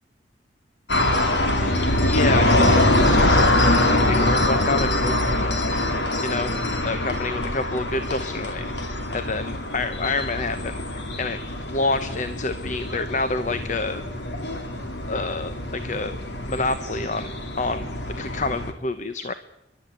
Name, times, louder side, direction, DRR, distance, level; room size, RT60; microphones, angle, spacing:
sound 1, 0.9-18.7, left 1 dB, 75° left, 2.8 m, -23 dB
voice 1, 1.6-5.3 6.2-6.5 6.8-11.4 11.7-14.0 15.1-16.2 16.4-17.9 18.2-19.3, left 3 dB, 45° left, 11 dB, 0.9 m, -28 dB
28.5 x 12.0 x 9.4 m, 0.94 s
head